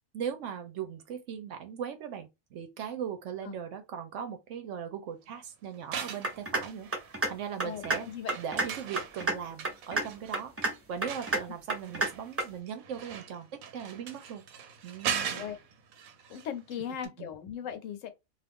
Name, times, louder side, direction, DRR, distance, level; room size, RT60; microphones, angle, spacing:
voice 1, 0.1-8.1 8.4-10.5 10.9-13.5 13.7-14.4 14.8-15.5 17.2-17.3, right 8 dB, 70° right, 0.9 m, -39 dB
sound 1, 5.7-7.4 7.7-16.8 17.0-17.1, right 7 dB, 90° right, 1.1 m, -40 dB
sound 2, 6.2-6.6 6.9-7.3 7.6-8.0 8.3-8.7 9.0-9.3 9.6-10.1 10.3-10.7 11.0-11.4 11.7-12.1 12.4-12.5, right 2 dB, 15° right, 0.4 m, -28 dB
voice 2, 7.6-8.4 15.3-15.6 16.3-18.1, left 9 dB, 70° left, 1.0 m, -38 dB
2.5 x 2.4 x 3.5 m
omnidirectional pair, 1.4 m